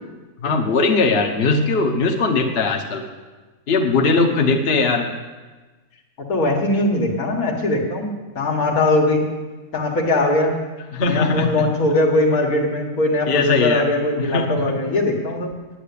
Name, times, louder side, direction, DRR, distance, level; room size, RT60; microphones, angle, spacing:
voice 1, 0.4-3.0 3.7-5.1 10.9-11.7 13.2-13.9 14.2-14.8, left 3 dB, 45° left, 2 dB, 1.2 m, -19 dB
voice 2, 6.3-9.2 9.7-10.6 11.0-15.5, left 2 dB, 70° left, 1 dB, 2.1 m, -20 dB
9.4 x 9.3 x 8.5 m, 1.3 s
omnidirectional pair, 1.6 m